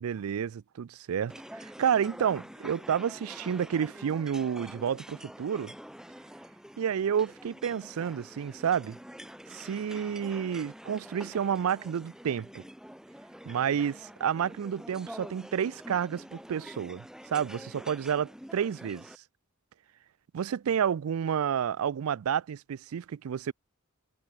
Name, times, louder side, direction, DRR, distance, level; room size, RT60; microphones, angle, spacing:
voice 1, 0.0-5.7 6.8-9.0 9.5-12.6 13.5-19.1 20.3-23.5, right 8 dB, 85° right, 0.4 m, -30 dB
sound 1, 1.3-19.2, equal, 5° right, 2.9 m, -47 dB
head